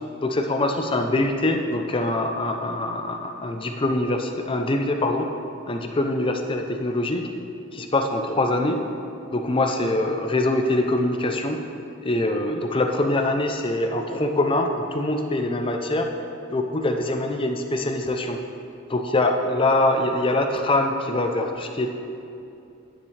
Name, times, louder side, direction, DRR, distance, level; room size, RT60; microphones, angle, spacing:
voice 1, 0.0-5.3 5.7-7.3 7.7-8.8 9.3-11.6 12.0-16.1 16.5-18.4 18.9-21.9, left 2 dB, 25° left, 4 dB, 0.5 m, -24 dB
10.0 x 9.6 x 3.3 m, 2.7 s
head